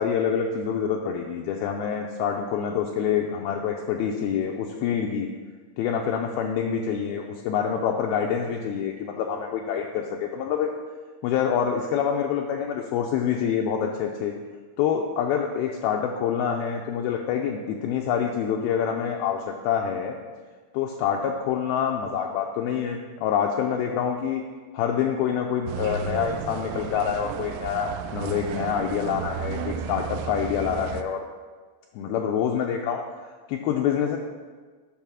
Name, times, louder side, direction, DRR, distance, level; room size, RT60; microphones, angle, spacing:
voice 1, 0.0-5.3 5.8-10.7 11.2-14.3 14.8-20.2 20.7-24.4 24.7-31.3 31.9-33.0 33.5-34.2, left 8 dB, 85° left, 1 dB, 2.2 m, -26 dB
sound 1, 25.7-31.0, right 7 dB, 85° right, 2.5 m, -33 dB
8.9 x 4.9 x 6.1 m, 1.4 s
omnidirectional pair, 4.8 m